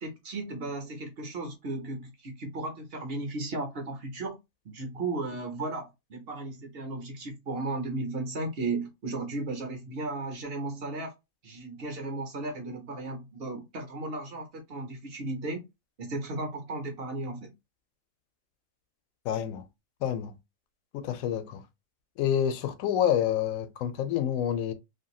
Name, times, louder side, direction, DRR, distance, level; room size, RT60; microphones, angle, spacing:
voice 1, 0.0-4.4 4.6-11.1 11.4-15.6 16.0-17.5, right 2 dB, 55° right, 0.8 m, -35 dB
voice 2, 19.2-19.6 20.0-20.3 20.9-21.6 22.2-24.7, left 10 dB, 85° left, 1.0 m, -28 dB
2.9 x 2.6 x 2.2 m
omnidirectional pair, 1.4 m